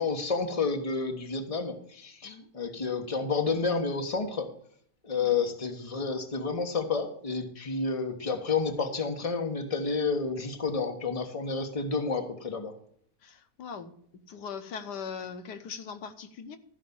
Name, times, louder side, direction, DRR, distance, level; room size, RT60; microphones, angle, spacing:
voice 1, 0.0-4.5 5.0-12.7, left 4 dB, 20° left, 4 dB, 1.3 m, -30 dB
voice 2, 13.2-13.9 14.3-16.6, left 6 dB, 80° left, 9 dB, 1.5 m, -40 dB
13.5 x 5.2 x 7.0 m, 0.62 s
omnidirectional pair, 1.8 m